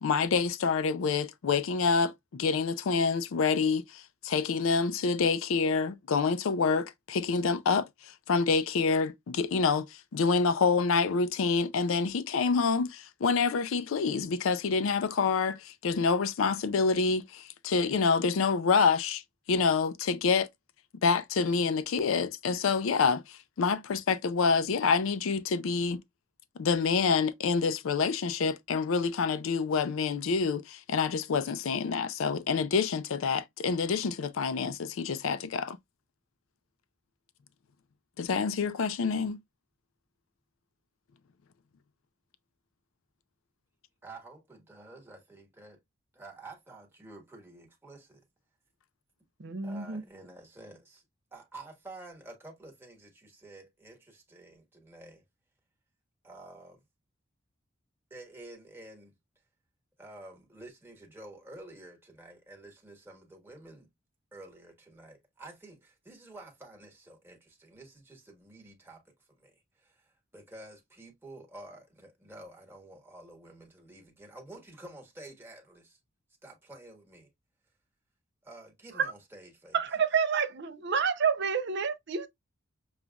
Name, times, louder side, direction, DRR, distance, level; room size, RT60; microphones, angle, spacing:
voice 1, 0.0-19.2 19.5-20.5 21.0-26.0 26.6-35.8 38.2-39.4, left 5 dB, 75° left, 0.4 m, -27 dB
voice 2, 44.0-45.8 46.1-48.2 49.6-51.0 51.3-55.2 56.2-56.8 58.1-59.1 60.0-63.9 64.3-76.0 76.4-77.3 78.4-79.8, right 2 dB, 10° right, 1.4 m, -50 dB
voice 3, 49.4-50.0 79.7-82.3, right 6 dB, 55° right, 0.6 m, -29 dB
6.8 x 2.4 x 2.3 m
head